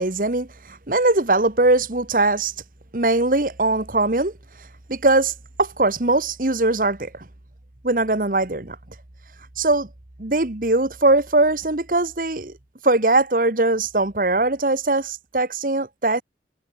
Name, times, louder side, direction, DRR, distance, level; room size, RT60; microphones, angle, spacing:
voice 1, 0.0-2.5 2.9-4.3 4.9-5.3 5.6-7.1 7.8-8.8 9.6-9.9 10.2-12.5 12.8-16.2, right 2 dB, 50° right, 1.5 m, -20 dB
head